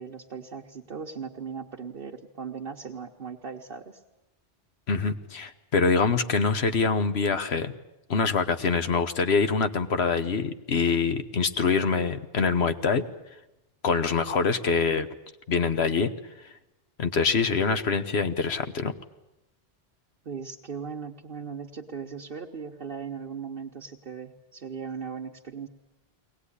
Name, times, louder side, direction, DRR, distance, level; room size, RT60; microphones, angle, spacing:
voice 1, 0.0-4.0 20.2-25.7, right 6 dB, 60° right, -1 dB, 1.3 m, -38 dB
voice 2, 4.9-7.7 8.1-13.1 13.8-15.1 15.5-16.1 17.0-18.9, left 5 dB, 80° left, 9 dB, 1.4 m, -25 dB
22.5 x 18.5 x 10.0 m, 0.95 s
omnidirectional pair, 1.1 m